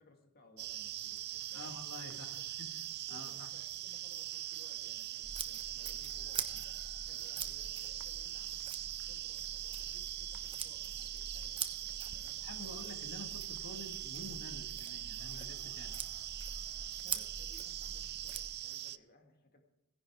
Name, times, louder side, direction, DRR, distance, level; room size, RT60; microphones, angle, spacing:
voice 1, 0.0-1.8 2.2-2.5 3.1-8.6 8.9-12.7 17.0-19.6, left 2 dB, 45° left, 3 dB, 2.2 m, -62 dB
sound 1, 0.6-19.0, right 13 dB, 50° right, 0.5 m, -42 dB
voice 2, 1.5-3.5 12.4-16.0, left 2 dB, 65° left, 5 dB, 2.0 m, -49 dB
sound 2, 5.2-18.5, right 5 dB, 25° right, 1.0 m, -45 dB
17.5 x 10.5 x 4.9 m, 0.89 s
head